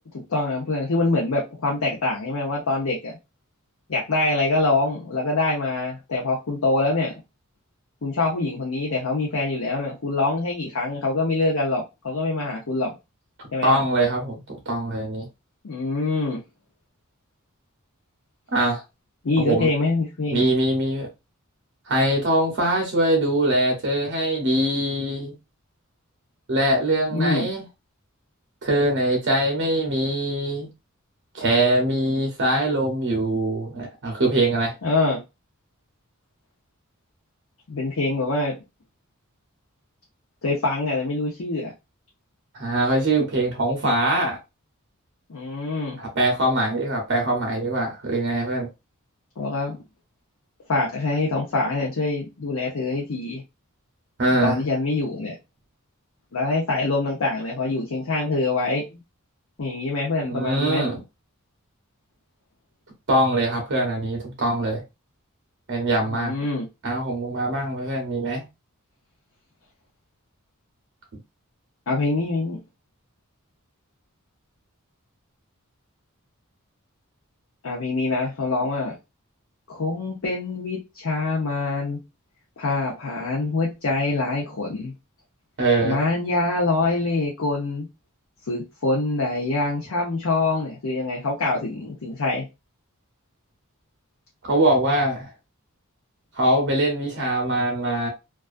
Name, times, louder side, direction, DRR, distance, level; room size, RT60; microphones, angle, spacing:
voice 1, 0.1-3.2 3.9-7.1 8.0-13.0 13.5-13.8 15.6-16.4 19.2-20.4 27.1-27.5 34.8-35.2 37.7-38.5 40.4-41.7 45.3-46.0 49.4-49.8 50.7-53.4 54.4-55.3 56.3-59.0 59.6-60.9 66.1-66.7 71.9-72.6 77.6-79.0 79.7-82.0 82.6-84.9 85.8-87.9 88.5-92.5, left 3 dB, 70° left, 0.7 m, -25 dB
voice 2, 13.6-15.3 18.5-18.8 19.4-19.7 20.3-21.1 21.9-25.3 26.5-27.6 28.6-30.7 31.3-34.7 42.5-44.4 46.0-48.7 54.2-54.6 60.2-61.0 63.1-64.8 65.7-66.3 66.8-68.4 85.6-86.0 94.4-95.3 96.4-98.1, right 1 dB, 55° right, 0.7 m, -22 dB
2.4 x 2.3 x 2.4 m
head